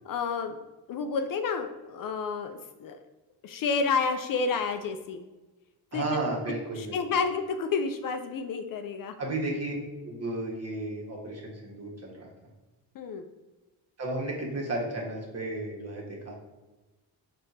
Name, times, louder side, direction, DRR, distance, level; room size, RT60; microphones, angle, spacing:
voice 1, 0.0-0.6 0.9-3.0 3.4-5.2 5.9-6.2 6.7-9.3 12.9-13.3, left 5 dB, 50° left, 7 dB, 0.4 m, -30 dB
voice 2, 5.9-7.0 9.2-9.7 10.0-12.3 14.0-16.4, right 2 dB, 35° right, -1 dB, 1.3 m, -33 dB
3.5 x 2.5 x 4.2 m, 1.1 s
supercardioid pair, 70°, 43 cm